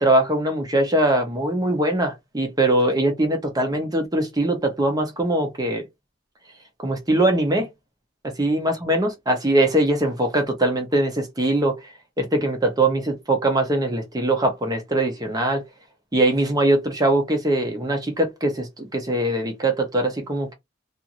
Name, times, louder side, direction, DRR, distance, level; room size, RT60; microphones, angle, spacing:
voice 1, 0.0-5.8 6.8-7.7 8.4-15.6 16.1-20.5, right 1 dB, 20° right, 0.6 m, -22 dB
2.5 x 2.4 x 2.8 m
head